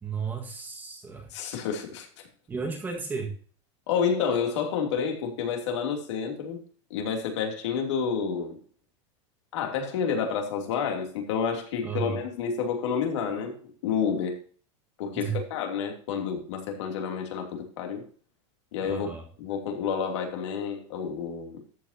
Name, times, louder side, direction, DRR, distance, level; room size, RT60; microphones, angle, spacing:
voice 1, 0.0-1.3 2.5-3.3 11.8-12.2 15.1-15.4 18.8-19.2, right 5 dB, 10° right, 1.8 m, -33 dB
voice 2, 1.3-2.1 3.9-6.6 6.9-8.6 9.5-13.6 13.8-14.4 15.0-18.0 18.7-19.1 19.4-21.6, left 6 dB, 65° left, 3.0 m, -29 dB
13.5 x 8.6 x 2.9 m
supercardioid pair, 175°, 16 cm